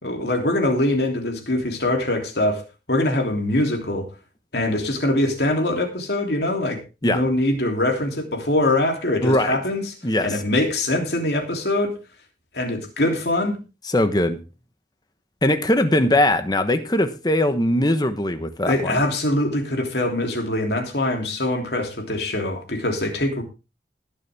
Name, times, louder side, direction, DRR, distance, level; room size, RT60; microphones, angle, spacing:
voice 1, 0.0-4.1 4.5-9.9 10.2-11.9 12.5-13.6 18.7-23.4, left 1 dB, 60° left, 3.1 m, -23 dB
voice 2, 9.2-9.6 10.0-10.4 13.9-14.4 15.4-18.9, left 1 dB, 20° left, 1.2 m, -20 dB
20.5 x 7.0 x 3.5 m
head